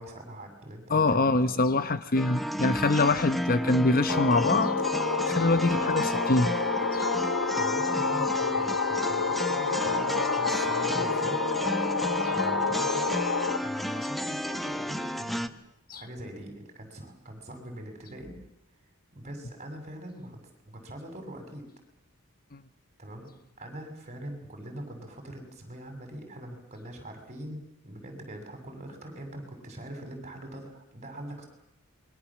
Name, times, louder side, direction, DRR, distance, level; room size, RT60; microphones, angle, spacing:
voice 1, 0.0-1.6 7.6-12.0 12.3-13.1 13.6-15.5 15.9-18.3 19.1-21.7 23.0-31.5, right 1 dB, 35° right, 4 dB, 7.0 m, -42 dB
voice 2, 0.9-4.7 5.3-6.5 6.9-7.1 15.9-16.0 22.5-22.6, left 2 dB, 45° left, 12 dB, 1.0 m, -24 dB
sound 1, 2.1-15.5, equal, ahead, 1.1 m, -32 dB
sound 2, 4.1-13.6, left 5 dB, 75° left, 1.4 m, -28 dB
28.0 x 23.0 x 7.5 m, 0.81 s
head